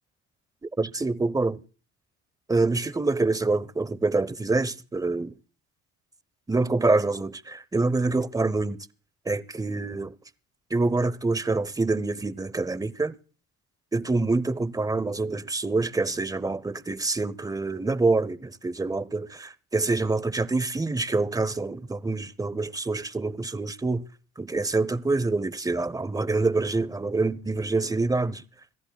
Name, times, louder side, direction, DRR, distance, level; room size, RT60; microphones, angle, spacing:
voice 1, 0.6-1.6 2.5-5.3 6.5-8.8 9.3-10.1 10.7-13.1 13.9-24.0 24.4-28.4, right 3 dB, 10° right, 0.7 m, -26 dB
27.0 x 14.5 x 2.3 m
supercardioid pair, 75°, 35 cm